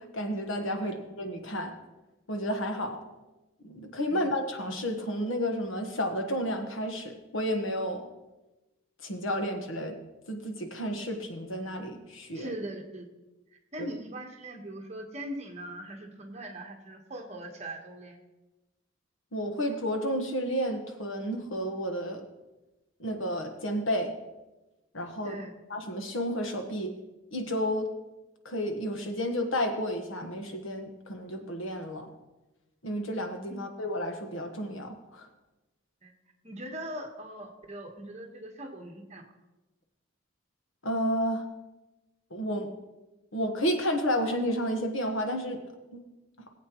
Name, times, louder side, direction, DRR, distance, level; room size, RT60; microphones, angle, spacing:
voice 1, 0.1-1.7 2.3-3.0 3.6-8.0 9.0-9.9 10.3-12.5 13.8-13.9 19.3-22.2 23.0-24.1 24.9-25.4 25.7-26.9 27.3-27.9 28.4-32.1 32.8-35.3 40.8-41.5 42.3-42.7 43.3-45.6 45.9-46.0, equal, 70° left, 5 dB, 1.3 m, -31 dB
voice 2, 12.3-13.1 13.7-18.2 25.2-25.5 33.5-33.6 36.0-36.1 36.4-39.2, right 1 dB, 30° right, 2 dB, 1.3 m, -40 dB
19.0 x 8.2 x 3.1 m, 1.1 s
head